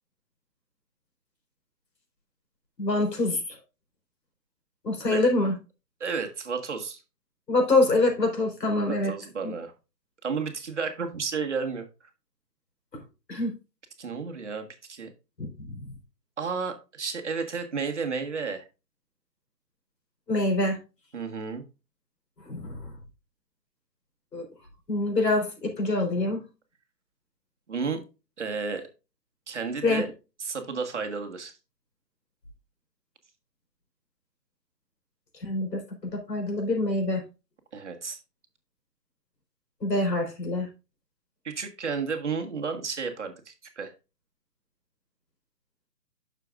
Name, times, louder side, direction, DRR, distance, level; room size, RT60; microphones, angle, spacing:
voice 1, 2.8-3.6 4.8-5.5 7.5-9.1 9.4-9.5 13.3-13.5 15.4-15.9 20.3-20.8 22.4-22.9 24.3-24.4 24.9-26.4 29.8-30.0 35.4-35.8 36.1-37.2 39.8-40.7, left 2 dB, 75° left, 3 dB, 4.1 m, -25 dB
voice 2, 6.0-7.0 8.9-9.7 10.2-12.1 14.0-15.1 16.4-18.7 21.1-21.6 27.7-28.0 28.4-28.9 29.5-30.1 30.4-31.5 37.7-38.2 41.4-43.9, right 5 dB, 45° right, 4 dB, 1.5 m, -32 dB
9.8 x 6.7 x 2.5 m, 0.29 s
hypercardioid pair, 165°, 49 cm